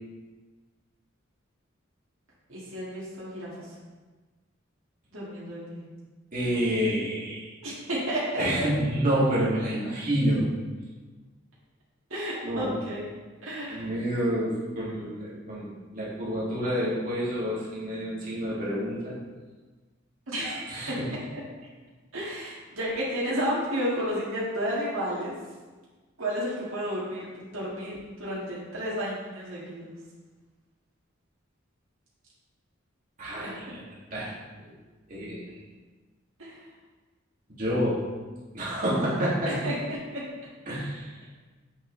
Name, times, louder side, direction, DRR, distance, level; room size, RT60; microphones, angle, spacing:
voice 1, 2.5-3.5 5.1-5.8 7.6-8.7 12.1-13.0 13.4-13.9 20.3-21.0 21.3-21.4 22.1-25.3 26.2-27.3 27.5-29.9 33.4-33.5 36.4-36.6 39.4-40.2, equal, 80° right, -7 dB, 2.0 m, -32 dB
voice 2, 6.3-7.5 8.4-10.5 12.4-12.8 13.7-19.1 20.7-21.1 33.2-33.8 34.1-34.3 35.1-35.4 37.6-38.0 38.5-39.6 40.7-41.1, equal, 45° right, -8 dB, 2.3 m, -28 dB
7.7 x 6.0 x 3.2 m, 1.3 s
head